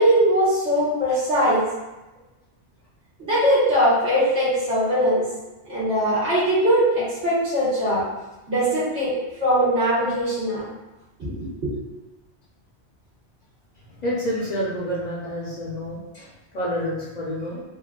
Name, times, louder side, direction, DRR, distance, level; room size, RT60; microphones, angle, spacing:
voice 1, 0.0-1.6 3.2-5.3 5.7-8.0 8.5-9.1 9.4-10.6 11.2-11.7, equal, 90° right, -10 dB, 1.6 m, -21 dB
voice 2, 14.0-17.6, equal, 50° left, -5 dB, 0.6 m, -28 dB
3.7 x 2.3 x 2.3 m, 1.0 s
omnidirectional pair, 1.2 m